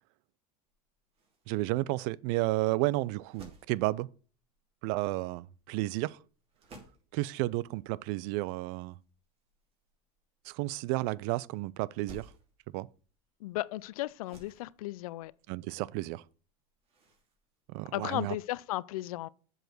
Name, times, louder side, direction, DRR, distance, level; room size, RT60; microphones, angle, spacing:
sound 1, 0.7-18.6, right 1 dB, 35° right, 3.0 m, -60 dB
voice 1, 1.5-4.1 4.8-6.2 7.1-8.9 10.5-12.3 12.7-12.9 15.5-16.2 17.7-18.3, right 19 dB, 55° right, 0.4 m, -32 dB
voice 2, 13.4-15.3 17.9-19.3, left 17 dB, 85° left, 0.4 m, -35 dB
7.8 x 4.9 x 6.1 m
supercardioid pair, 135°, 18 cm